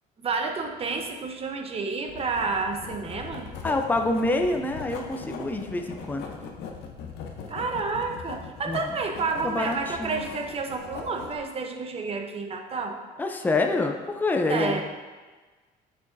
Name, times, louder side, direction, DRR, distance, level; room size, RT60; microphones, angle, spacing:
voice 1, 0.2-3.5 7.5-13.0 14.5-14.8, right 4 dB, 35° right, 3 dB, 0.8 m, -30 dB
Writing, 2.1-11.4, left 5 dB, 85° left, 0.8 m, -40 dB
voice 2, 3.6-6.3 8.7-10.2 13.2-14.8, left 2 dB, 10° left, 4 dB, 0.5 m, -27 dB
6.8 x 6.2 x 2.6 m, 1.3 s
cardioid pair, 110°, 17 cm